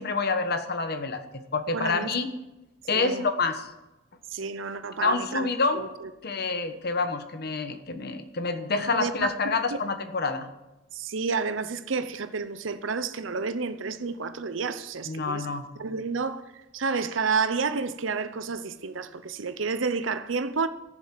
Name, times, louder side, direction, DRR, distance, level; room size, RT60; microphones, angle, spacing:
voice 1, 0.0-2.3 2.9-3.7 5.0-5.9 6.2-10.5 15.1-15.6, left 4 dB, 55° left, 1.3 m, -27 dB
voice 2, 1.7-2.1 2.9-3.2 4.3-5.5 5.7-6.1 8.9-9.8 10.9-15.5 15.8-16.4 16.7-20.7, right 4 dB, 75° right, 0.7 m, -30 dB
14.0 x 7.3 x 7.6 m
head